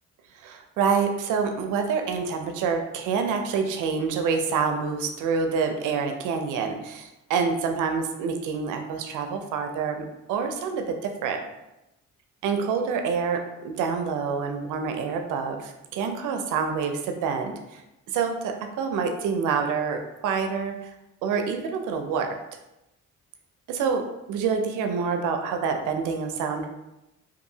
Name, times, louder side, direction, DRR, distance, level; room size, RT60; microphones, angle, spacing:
voice 1, 0.4-11.0 11.2-11.4 12.4-17.8 18.1-20.9 21.2-22.3 23.7-24.0 24.3-26.7, right 5 dB, 85° right, 5 dB, 0.5 m, -27 dB
2.7 x 2.6 x 2.6 m, 0.94 s
cardioid pair, 90°, 30 cm